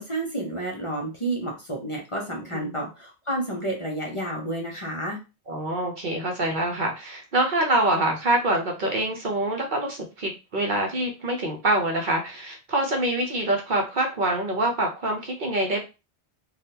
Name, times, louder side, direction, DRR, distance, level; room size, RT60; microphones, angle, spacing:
voice 1, 0.0-5.2, right 1 dB, 35° left, -1 dB, 0.7 m, -30 dB
voice 2, 5.5-15.8, right 1 dB, 50° right, 1 dB, 0.7 m, -25 dB
3.5 x 2.3 x 2.7 m, 0.28 s
omnidirectional pair, 1.1 m